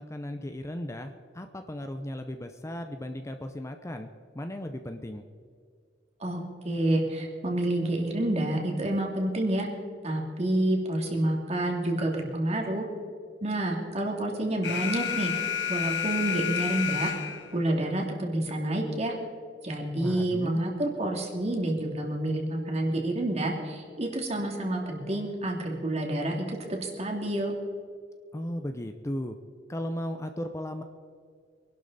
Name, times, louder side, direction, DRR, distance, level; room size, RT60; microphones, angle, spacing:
voice 1, 0.0-4.1 4.3-5.3 20.0-20.6 28.3-29.4 29.7-30.8, left 1 dB, 15° left, 7 dB, 0.6 m, -36 dB
voice 2, 6.6-9.7 10.0-12.9 13.4-15.3 15.7-17.1 17.5-19.1 19.6-27.5, right 1 dB, 40° right, 1 dB, 2.5 m, -28 dB
Alarm, 14.6-17.6, left 9 dB, 80° left, 1.4 m, -30 dB
24.0 x 12.0 x 4.1 m, 2.1 s
head